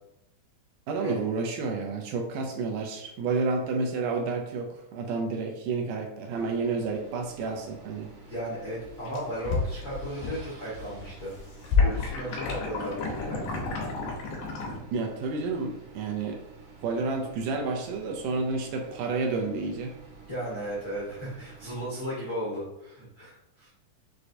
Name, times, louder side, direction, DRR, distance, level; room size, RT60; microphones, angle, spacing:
voice 1, 0.9-8.1 14.9-16.4 16.8-19.9, right 4 dB, 80° right, 3 dB, 2.1 m, -30 dB
sound 1, 6.3-21.9, right 4 dB, 60° right, 1.7 m, -50 dB
voice 2, 8.3-11.3 11.8-13.8 20.3-23.7, equal, 70° left, -8 dB, 0.9 m, -35 dB
sound 2, 8.9-10.5 10.7-14.8, left 4 dB, 90° left, 2.7 m, -29 dB
6.3 x 3.2 x 2.6 m, 0.86 s
omnidirectional pair, 3.9 m